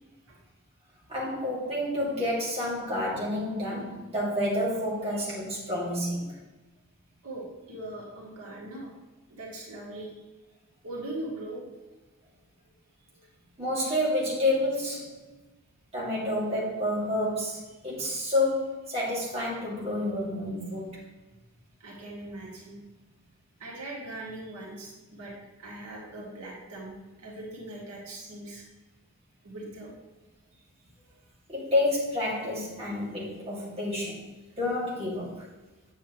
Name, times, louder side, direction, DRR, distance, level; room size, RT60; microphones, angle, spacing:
voice 1, 1.1-6.3 13.6-15.1 15.9-21.0 31.5-34.2 34.6-35.5, left 1 dB, 30° right, -6 dB, 2.3 m, -29 dB
voice 2, 7.2-8.9 9.3-10.1 10.8-11.7 21.8-22.8 23.6-25.3 25.6-28.6 29.4-29.9, right 1 dB, 80° right, -3 dB, 2.1 m, -40 dB
8.2 x 7.4 x 3.1 m, 1.2 s
head